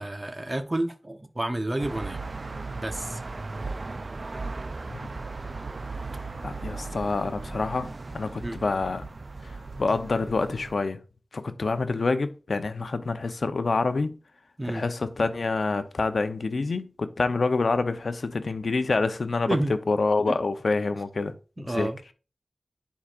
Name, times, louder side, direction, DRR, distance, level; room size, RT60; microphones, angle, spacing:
voice 1, 0.0-2.2 2.7-3.2 8.4-8.6 14.6-14.8 19.5-19.7 20.3-20.4 21.6-22.0, right 1 dB, 30° right, 0.8 m, -30 dB
sound 1, 1.8-10.8, right 3 dB, 60° right, 0.4 m, -37 dB
voice 2, 6.4-9.1 9.4-11.0 11.3-14.1 14.6-19.5 19.9-21.3 21.6-21.9, left 3 dB, 80° left, 0.7 m, -27 dB
10.0 x 4.8 x 2.5 m
wide cardioid pair, 55°, 0 cm